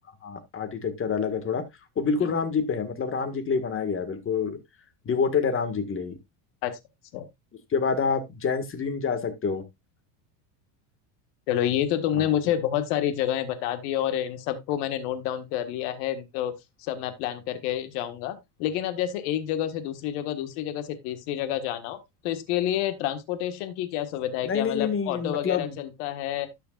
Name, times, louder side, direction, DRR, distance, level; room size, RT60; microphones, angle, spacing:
voice 1, 0.2-1.7 1.9-4.6 5.0-6.2 7.7-9.6 12.2-12.3 24.4-25.8, left 5 dB, 25° left, 1.7 m, -27 dB
voice 2, 11.5-16.5 16.8-22.0 22.2-26.6, left 11 dB, 75° left, 1.7 m, -28 dB
12.5 x 6.8 x 2.4 m
supercardioid pair, 125°, 48 cm